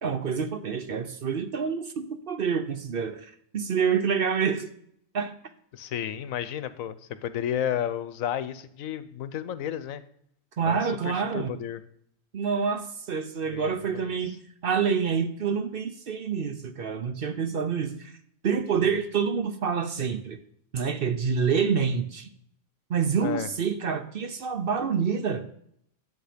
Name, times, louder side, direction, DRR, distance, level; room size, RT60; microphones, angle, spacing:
voice 1, 0.0-4.7 5.1-5.3 10.6-11.5 12.3-14.4 14.6-18.1 18.4-20.4 20.7-22.3 22.9-25.5, right 6 dB, 50° right, 10 dB, 0.8 m, -27 dB
voice 2, 5.7-10.0 10.7-11.8 13.4-14.1 18.8-18.9 23.2-23.5, left 10 dB, 85° left, 14 dB, 1.1 m, -32 dB
10.5 x 7.5 x 5.1 m, 0.70 s
omnidirectional pair, 1.4 m